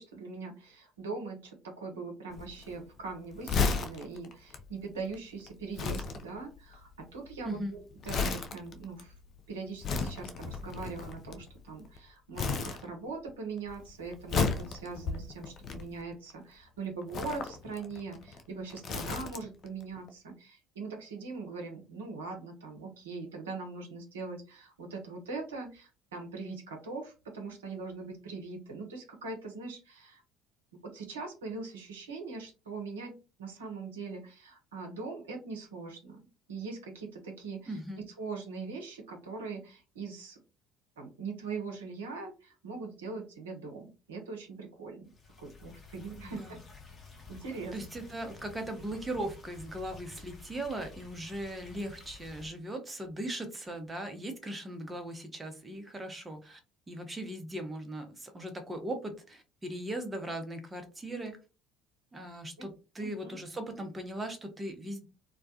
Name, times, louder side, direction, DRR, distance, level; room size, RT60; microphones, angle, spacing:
voice 1, 0.0-9.1 9.5-30.2 30.8-33.1 33.4-37.8 38.2-40.4 41.0-45.1 45.4-46.6 47.3-47.7 62.2-62.7 63.0-63.4, right 4 dB, 75° right, 2 dB, 0.6 m, -41 dB
Crumpling crinkling, 2.3-12.0 12.3-13.3 13.6-16.3 17.0-19.7 20.0-20.1, left 4 dB, 45° left, 0.4 m, -34 dB
voice 2, 7.4-7.8 37.7-38.0 46.2-46.6 47.7-56.6 56.9-61.4 62.1-65.1, right 1 dB, 20° right, 6 dB, 0.7 m, -39 dB
sound 1, 45.0-52.5, left 4 dB, 30° left, 0.8 m, -51 dB
2.2 x 2.2 x 2.6 m, 0.31 s
figure-of-eight pair, 55°, 0 cm